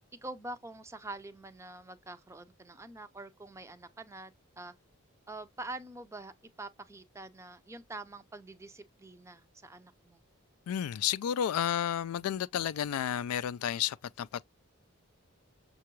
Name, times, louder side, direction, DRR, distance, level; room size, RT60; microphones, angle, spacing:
voice 1, 0.2-4.7 5.3-6.3 6.6-10.2, right 2 dB, 15° right, 0.4 m, -45 dB
voice 2, 10.7-14.5, left 10 dB, 85° left, 0.3 m, -32 dB
6.6 x 2.3 x 3.0 m
head